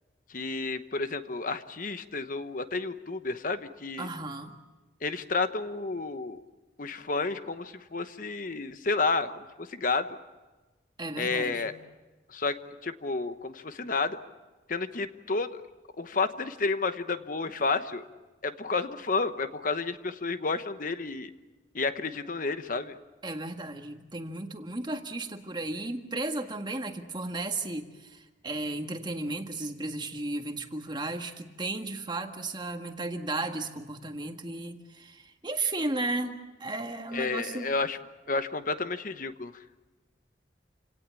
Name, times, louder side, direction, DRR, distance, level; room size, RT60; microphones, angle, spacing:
voice 1, 0.3-4.1 5.0-6.4 6.8-10.1 11.2-11.7 12.3-12.6 12.8-14.2 14.7-15.5 16.0-18.0 18.4-21.3 21.7-22.9 37.1-38.0 38.3-39.5, left 3 dB, 50° left, 10 dB, 1.0 m, -31 dB
voice 2, 4.0-4.5 11.0-11.7 23.2-37.7, right 2 dB, 25° right, 5 dB, 1.7 m, -34 dB
28.0 x 18.0 x 8.4 m, 1.2 s
head